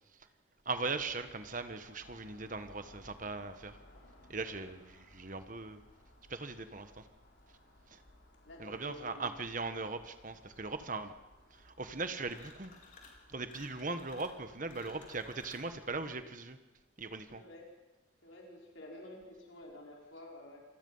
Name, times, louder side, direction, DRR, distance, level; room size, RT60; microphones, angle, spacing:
voice 1, 0.6-3.8 4.3-5.8 6.3-7.1 7.9-8.0 8.6-11.1 11.5-12.7 13.3-16.6 17.0-17.4, right 3 dB, 40° right, 9 dB, 1.4 m, -39 dB
sound 1, 0.7-16.2, left 1 dB, 60° left, 4.0 m, -61 dB
voice 2, 8.4-9.3 14.6-15.0 17.3-17.6 18.2-20.6, left 1 dB, 75° left, -2 dB, 5.2 m, -51 dB
sound 2, 12.3-13.2 13.5-15.7, left 4 dB, 40° left, 4.3 m, -56 dB
27.0 x 20.5 x 5.6 m, 1.1 s
head